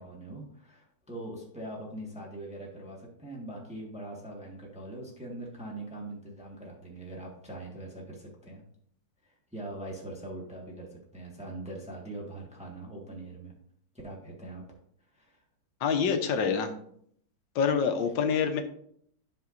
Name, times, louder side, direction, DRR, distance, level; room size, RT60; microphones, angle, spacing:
voice 1, 0.0-8.6 9.2-13.5 14.0-14.6 15.1-15.4, right 1 dB, 5° right, -2 dB, 1.3 m, -42 dB
voice 2, 15.8-16.7 17.5-18.6, left 6 dB, 80° left, 7 dB, 1.5 m, -26 dB
11.0 x 5.3 x 2.5 m, 0.68 s
omnidirectional pair, 2.0 m